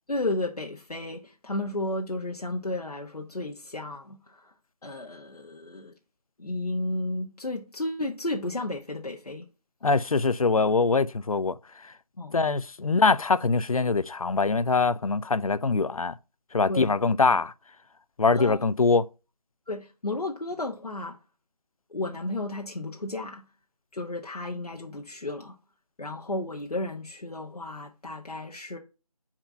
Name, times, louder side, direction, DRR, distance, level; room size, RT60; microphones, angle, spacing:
voice 1, 0.1-4.5 4.8-5.9 6.4-9.5 12.2-12.4 16.7-17.0 18.3-18.6 19.7-21.2 21.9-23.4 23.9-25.6 26.0-28.8, left 2 dB, 85° left, 1.1 m, -33 dB
voice 2, 9.8-11.6 11.8-11.9 12.3-16.2 16.5-17.5 18.2-19.1, left 4 dB, 70° left, 0.5 m, -23 dB
4.4 x 4.1 x 5.6 m
figure-of-eight pair, 175°, 19 cm